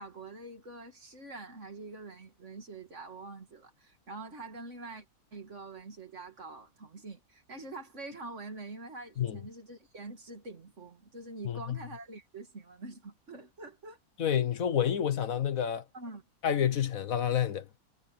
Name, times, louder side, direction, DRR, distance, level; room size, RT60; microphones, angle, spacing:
voice 1, 0.0-5.1 5.3-14.0 15.9-16.2, right 3 dB, 50° right, 2.7 m, -45 dB
voice 2, 11.4-11.8 14.2-15.8 16.4-17.6, left 9 dB, 65° left, 1.4 m, -29 dB
omnidirectional pair, 1.6 m